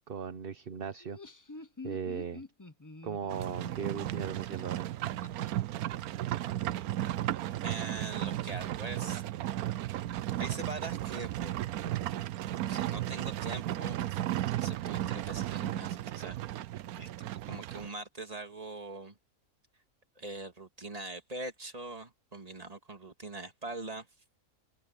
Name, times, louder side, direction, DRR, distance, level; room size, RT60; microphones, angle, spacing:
voice 1, 0.1-1.2 1.8-2.4 3.0-4.9, right 7 dB, 45° right, 1.0 m, -37 dB
Laughter, 0.9-5.5, left 3 dB, 20° left, 0.6 m, -48 dB
Livestock farm animals working animals, 3.3-17.9, right 13 dB, 90° right, 1.1 m, -34 dB
voice 2, 7.6-9.2 10.4-12.0 12.5-16.4 17.0-19.2 20.2-24.1, right 2 dB, 25° right, 2.2 m, -43 dB
omnidirectional pair, 1.5 m